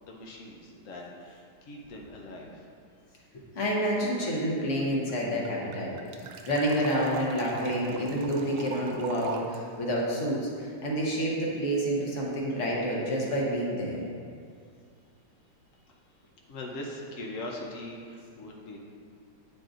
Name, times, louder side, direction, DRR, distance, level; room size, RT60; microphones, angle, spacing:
voice 1, 0.0-2.7 12.5-12.6 16.5-18.8, left 1 dB, 90° left, -1 dB, 0.7 m, -41 dB
voice 2, 3.3-14.0, equal, 45° left, -3 dB, 1.1 m, -29 dB
sound 1, 4.8-4.9 5.1-5.2 5.4-9.6, right 5 dB, 90° right, 1.4 m, -40 dB
9.0 x 5.1 x 2.5 m, 2.2 s
omnidirectional pair, 2.3 m